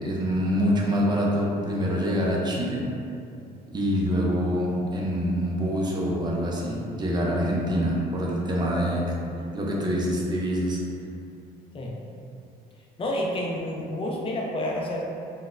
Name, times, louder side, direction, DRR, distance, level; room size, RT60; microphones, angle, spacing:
voice 1, 0.0-2.9 3.7-9.2 9.5-10.8, equal, 25° right, -4 dB, 0.6 m, -25 dB
voice 2, 13.0-15.0, left 1 dB, 30° left, -2 dB, 0.5 m, -29 dB
3.8 x 2.2 x 2.5 m, 2.6 s
cardioid pair, 110°, 17 cm